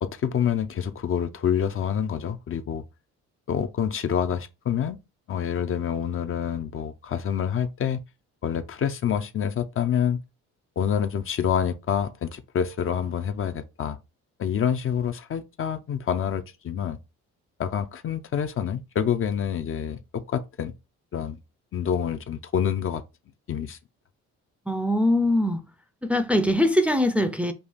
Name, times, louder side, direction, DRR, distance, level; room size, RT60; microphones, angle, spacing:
voice 1, 0.0-2.8 3.5-5.0 5.3-8.0 8.4-10.2 10.8-14.0 14.4-17.0 17.6-20.7 21.1-21.4 21.7-23.0 23.5-23.8, left 8 dB, 45° left, 0.5 m, -27 dB
voice 2, 24.7-25.6 26.0-27.5, left 1 dB, 5° right, 0.5 m, -22 dB
5.4 x 2.3 x 3.4 m
cardioid pair, 90°, 30 cm